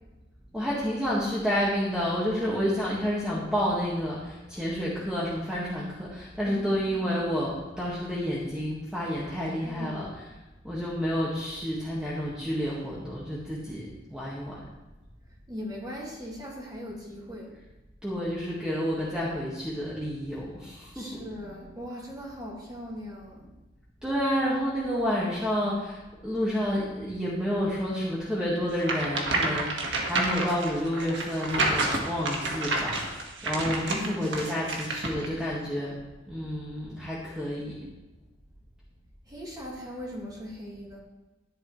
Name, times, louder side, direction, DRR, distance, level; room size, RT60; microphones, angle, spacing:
voice 1, 0.5-10.3 10.6-14.6 18.0-21.2 24.0-36.0 36.3-37.8, equal, 5° right, -7 dB, 1.8 m, -30 dB
voice 2, 6.5-6.8 9.6-10.3 15.5-17.6 20.9-23.5 33.9-34.2 39.3-41.0, equal, 20° right, -5 dB, 3.0 m, -39 dB
sound 1, 28.8-35.3, right 2 dB, 70° right, 1.7 m, -29 dB
12.5 x 10.5 x 3.2 m, 1.1 s
head